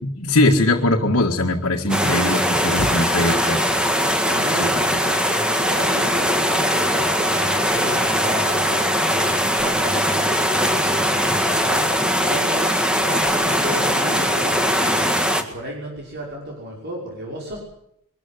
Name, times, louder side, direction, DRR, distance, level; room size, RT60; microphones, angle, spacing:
voice 1, 0.0-3.6 4.6-5.0, left 2 dB, 65° left, 1 dB, 1.8 m, -21 dB
sound 1, 1.9-15.4, equal, 5° right, 2.0 m, -20 dB
voice 2, 3.9-4.9 5.5-17.6, right 1 dB, 50° right, -2 dB, 5.9 m, -33 dB
23.0 x 14.0 x 9.6 m, 0.75 s
head